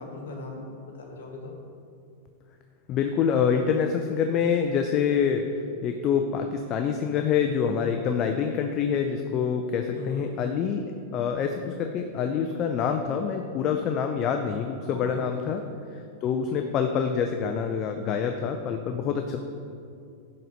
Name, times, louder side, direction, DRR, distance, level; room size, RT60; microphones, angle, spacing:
voice 1, 0.0-1.5 9.9-10.3 14.9-15.6, left 3 dB, 85° left, 0 dB, 1.7 m, -39 dB
voice 2, 2.9-5.5 5.8-10.9 11.1-15.6 15.9-19.4, left 7 dB, 40° left, 5 dB, 0.5 m, -26 dB
10.5 x 4.2 x 5.2 m, 2.5 s
hypercardioid pair, 120°, 0 cm